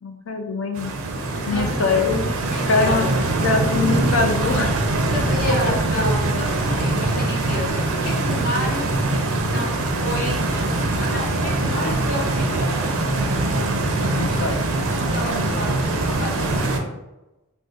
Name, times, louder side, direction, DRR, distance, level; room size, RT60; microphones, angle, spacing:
voice 1, 0.0-1.0 1.5-2.3 2.7-3.1 3.4-4.7 5.4-6.2 6.7-6.8 14.1-14.6, left 3 dB, 70° left, 5 dB, 0.5 m, -23 dB
Stream, 0.8-16.8, right 2 dB, 75° right, 0.5 m, -23 dB
voice 2, 1.3-3.1 5.1-8.9 9.4-10.5 11.0-12.7 15.0-16.9, left 1 dB, 40° left, -7 dB, 0.7 m, -31 dB
sound 1, 2.2-7.7 8.0-8.1 8.3-8.4 8.7-8.8, equal, 15° right, 0.5 m, -32 dB
Guitar, 10.5-12.6, equal, 90° left, 1.4 m, -37 dB
2.5 x 2.4 x 3.8 m, 0.98 s
head